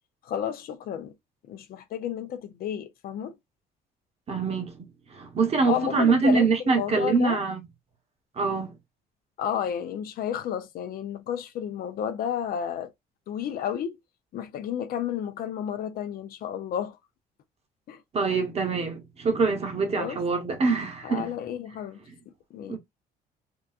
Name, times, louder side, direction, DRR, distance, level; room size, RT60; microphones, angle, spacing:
voice 1, 0.2-1.1 1.5-3.3 5.7-7.4 9.4-12.9 13.3-14.0 14.3-17.0 17.9-18.0 19.9-20.2 21.0-22.0 22.5-22.8, left 9 dB, 60° left, 0.6 m, -31 dB
voice 2, 4.3-4.7 5.1-7.6 8.4-8.7 18.1-21.3 22.7-22.8, right 4 dB, 35° right, 1.0 m, -24 dB
3.8 x 2.2 x 2.4 m
cardioid pair, 110°, 17 cm